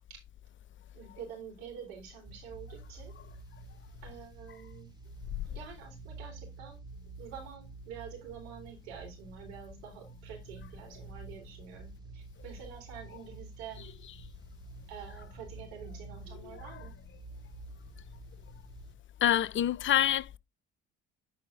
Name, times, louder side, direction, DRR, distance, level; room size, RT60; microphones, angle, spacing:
voice 1, 0.9-3.1 4.0-4.9 5.5-6.8 7.2-13.8 14.9-17.0, right 7 dB, 80° right, 3.8 m, -47 dB
sound 1, 2.2-18.9, right 3 dB, 15° right, 3.2 m, -49 dB
voice 2, 13.8-14.2 16.4-16.9 19.2-20.4, left 11 dB, 40° left, 0.6 m, -28 dB
9.8 x 4.1 x 3.6 m
hypercardioid pair, 60°, 30 cm